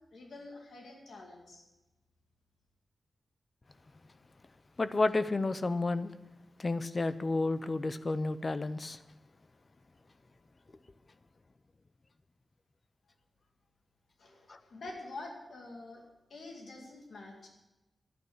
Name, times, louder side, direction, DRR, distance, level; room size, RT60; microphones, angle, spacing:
voice 1, 0.1-1.7 14.2-17.5, left 2 dB, 70° left, 1 dB, 2.2 m, -47 dB
voice 2, 4.8-6.1 6.6-9.0 14.5-14.6, left 2 dB, 30° left, 13 dB, 0.6 m, -31 dB
11.5 x 9.6 x 7.7 m, 1.0 s
wide cardioid pair, 160°, 0 cm